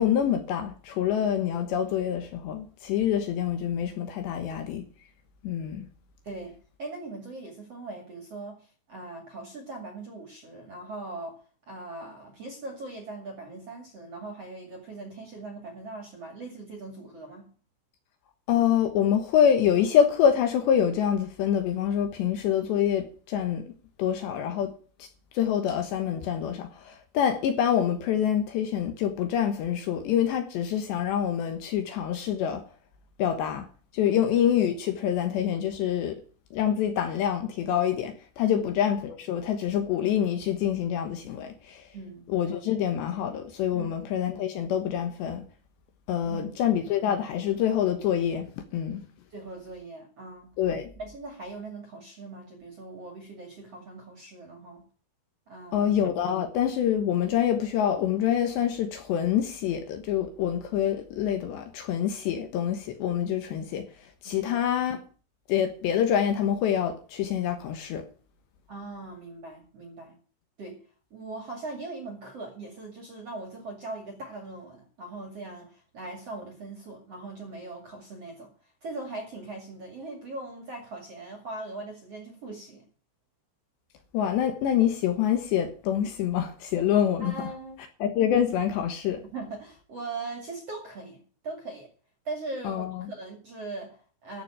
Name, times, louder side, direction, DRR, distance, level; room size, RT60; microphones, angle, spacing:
voice 1, 0.0-4.9 5.4-5.9 18.5-23.7 24.0-24.7 25.0-25.1 25.3-32.6 33.2-33.7 33.9-36.2 36.5-41.9 42.3-45.4 46.1-49.0 50.6-50.9 55.7-65.0 65.5-68.0 84.1-87.5 88.0-89.2 92.6-93.1, left 9 dB, 70° left, 3.1 m, -26 dB
voice 2, 6.2-11.4 11.7-17.5 34.1-34.2 38.5-38.6 41.9-42.3 43.7-43.9 46.2-46.6 49.3-50.5 51.0-54.9 55.5-55.9 64.2-64.6 68.7-70.2 70.6-70.8 71.1-78.5 78.8-82.9 87.2-87.8 89.2-91.9 92.2-94.4, right 2 dB, 40° right, 2.4 m, -40 dB
14.0 x 6.1 x 8.8 m
omnidirectional pair, 5.9 m